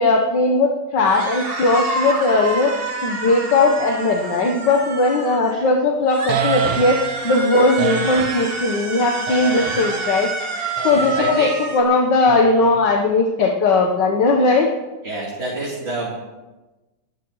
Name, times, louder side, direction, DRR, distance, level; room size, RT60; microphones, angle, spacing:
voice 1, 0.0-2.7 3.0-10.3 10.8-14.7, left 3 dB, 55° left, 1 dB, 1.8 m, -18 dB
sound 1, 1.1-5.6 6.1-11.8, right 3 dB, 30° right, 1.6 m, -28 dB
sound 2, 6.3-7.2 7.8-8.5 9.3-10.0 10.8-11.4 12.3-13.0, right 7 dB, 85° right, 2.0 m, -28 dB
voice 2, 10.5-11.6 15.0-16.1, right 2 dB, 60° right, -7 dB, 4.4 m, -29 dB
29.5 x 13.5 x 3.2 m, 1.1 s
omnidirectional pair, 2.4 m